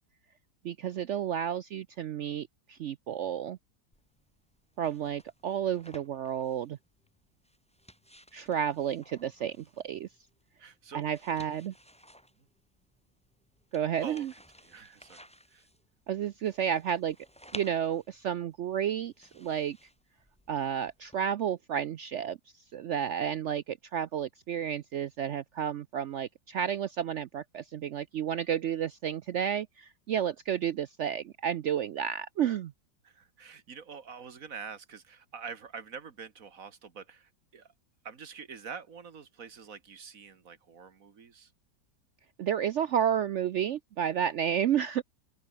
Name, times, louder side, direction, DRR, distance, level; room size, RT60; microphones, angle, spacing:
voice 1, 0.6-3.6 4.8-6.8 8.3-10.1 10.9-11.7 13.7-14.3 16.1-17.2 17.5-19.8 20.5-22.4 22.7-32.7 42.4-45.0, right 9 dB, 80° right, 0.6 m, -31 dB
sound 1, 3.9-21.2, equal, 5° left, 6.8 m, -55 dB
voice 2, 10.6-11.1 14.0-14.3 14.6-15.6 33.0-37.7 38.0-41.5, right 6 dB, 50° right, 1.9 m, -46 dB
open air
omnidirectional pair, 1.9 m